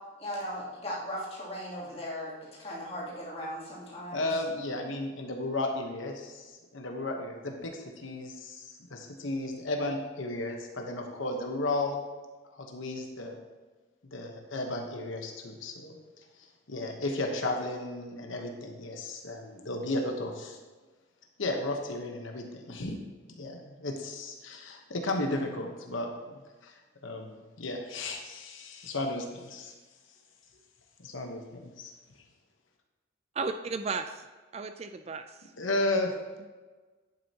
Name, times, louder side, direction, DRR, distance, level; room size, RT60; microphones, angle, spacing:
voice 1, 0.2-2.3 2.6-4.3, equal, 30° left, -8 dB, 2.9 m, -37 dB
voice 2, 4.1-12.0 12.5-13.4 14.0-16.2 16.7-20.6 21.4-23.0 23.3-29.7 31.0-31.9 35.6-36.1, left 2 dB, 90° left, 3 dB, 1.1 m, -34 dB
voice 3, 33.3-34.2 34.5-35.2, right 4 dB, 30° right, 8 dB, 0.3 m, -34 dB
10.5 x 8.7 x 2.9 m, 1.3 s
head